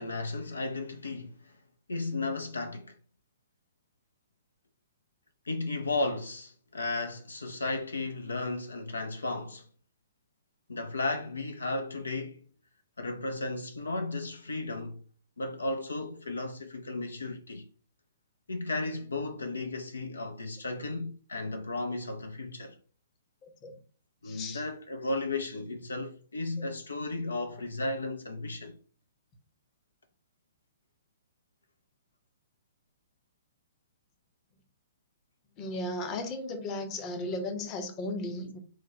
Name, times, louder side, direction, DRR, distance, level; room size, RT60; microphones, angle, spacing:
voice 1, 0.0-1.6 1.9-3.0 5.4-9.7 10.7-12.4 13.0-15.0 15.4-17.7 18.5-22.8 24.2-28.8, left 2 dB, 70° left, 0.5 m, -34 dB
voice 2, 23.4-23.7 24.2-24.6 35.6-38.6, left 2 dB, 25° left, 0.8 m, -35 dB
4.7 x 2.2 x 4.0 m
figure-of-eight pair, 120°, 0 cm